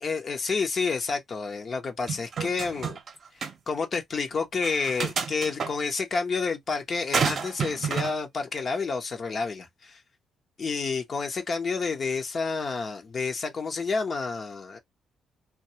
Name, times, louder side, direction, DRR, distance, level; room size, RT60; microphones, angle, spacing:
voice 1, 0.0-3.0 3.3-10.0 10.6-14.8, left 4 dB, 45° left, 0.8 m, -29 dB
sound 1, 2.1-3.1 3.4-3.5 4.6-5.7 7.1-8.1, right 6 dB, 50° right, 0.7 m, -29 dB
2.3 x 2.2 x 2.8 m
cardioid pair, 90°, 0 cm